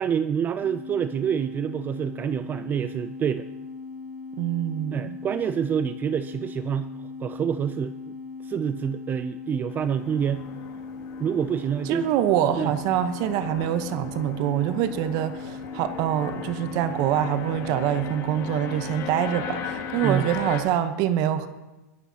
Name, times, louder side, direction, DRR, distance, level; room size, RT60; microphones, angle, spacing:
voice 1, 0.0-3.5 4.9-6.9 7.2-8.0 8.4-10.5 11.2-12.0 12.6-12.7 20.0-20.3, right 8 dB, 20° right, 12 dB, 0.4 m, -27 dB
sound 1, 0.6-20.2, left 4 dB, 80° left, 5.4 m, -39 dB
voice 2, 4.4-5.2 11.8-21.5, right 11 dB, 45° right, 11 dB, 0.9 m, -25 dB
sound 2, 9.7-20.6, left 7 dB, 40° left, 1.8 m, -38 dB
22.0 x 13.5 x 2.8 m, 1.1 s
supercardioid pair, 135°, 9 cm